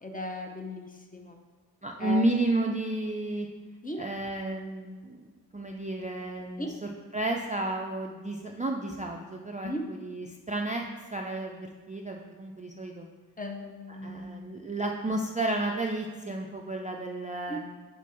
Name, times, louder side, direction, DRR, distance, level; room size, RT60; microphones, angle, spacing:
voice 1, 0.0-1.4 2.0-2.2 3.8-4.0 6.6-6.7 9.6-9.8 13.4-14.5 17.5-17.6, equal, 20° left, 3 dB, 0.7 m, -37 dB
voice 2, 1.8-3.5 4.0-5.2 5.5-10.8 11.1-13.1 13.9-17.6, right 2 dB, 20° right, 0 dB, 0.3 m, -32 dB
7.4 x 4.2 x 4.7 m, 1.4 s
wide cardioid pair, 175°, 38 cm